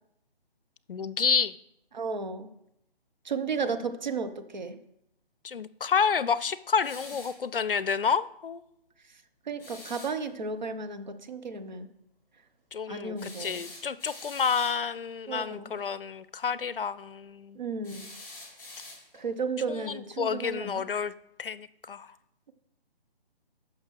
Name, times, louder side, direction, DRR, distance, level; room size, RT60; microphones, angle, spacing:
voice 1, 0.9-1.5 5.4-8.6 12.7-17.6 19.7-21.1 21.4-22.1, left 6 dB, 60° left, 17 dB, 0.5 m, -29 dB
voice 2, 1.9-2.5 3.2-4.8 9.5-11.9 12.9-13.6 15.3-15.7 17.5-18.1 19.2-20.8, right 4 dB, 45° right, 8 dB, 0.9 m, -33 dB
sound 1, 6.8-7.4 9.6-10.1 13.2-14.8 17.8-19.3, left 2 dB, 5° left, 2.2 m, -45 dB
13.5 x 6.0 x 3.3 m, 0.80 s
figure-of-eight pair, 145°, 30 cm